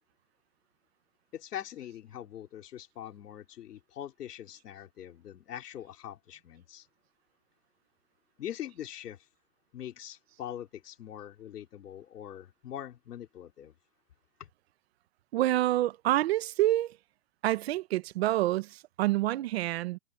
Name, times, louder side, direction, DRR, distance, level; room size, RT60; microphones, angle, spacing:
voice 1, 1.3-6.9 8.4-9.2 9.7-13.7 14.4-14.5, left 11 dB, 75° left, 3.8 m, -43 dB
voice 2, 15.3-17.0 17.4-20.0, right 15 dB, 40° right, 1.1 m, -27 dB
hypercardioid pair, 165°, 47 cm